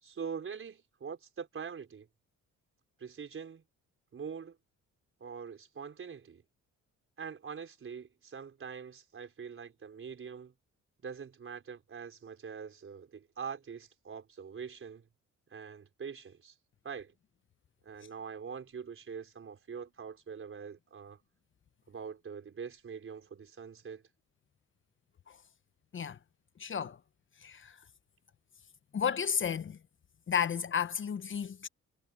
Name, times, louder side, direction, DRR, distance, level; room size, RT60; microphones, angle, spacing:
voice 1, 0.0-2.1 3.0-3.6 4.1-4.6 5.2-6.4 7.2-10.5 11.0-15.1 15.5-16.5 16.8-17.1 17.8-21.2 21.9-24.0, right 6 dB, 45° right, 4.4 m, -44 dB
voice 2, 26.6-27.0 27.4-27.8 28.9-29.8 30.3-31.7, left 7 dB, 40° left, 1.0 m, -32 dB
cardioid pair, 90°, 30 cm